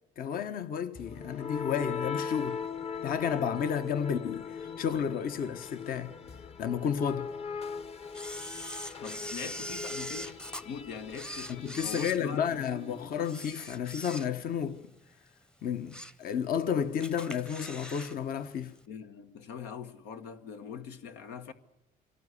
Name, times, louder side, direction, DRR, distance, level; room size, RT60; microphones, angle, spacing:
voice 1, 0.2-2.6 3.0-6.1 6.6-7.3 11.5-14.8 15.6-18.7, left 8 dB, 60° left, 1.4 m, -32 dB
sound 1, 0.9-12.8, left 6 dB, 35° left, 1.1 m, -40 dB
Camera, 8.1-10.6 11.1-12.8 13.2-14.6 15.0-15.1 15.6-16.2 16.6-16.7 17.0-18.2 18.4-18.5, equal, 5° left, 0.8 m, -42 dB
voice 2, 9.0-10.4 10.6-13.0 18.9-21.5, left 6 dB, 85° left, 1.6 m, -43 dB
24.0 x 18.0 x 9.9 m
cardioid pair, 110°, 17 cm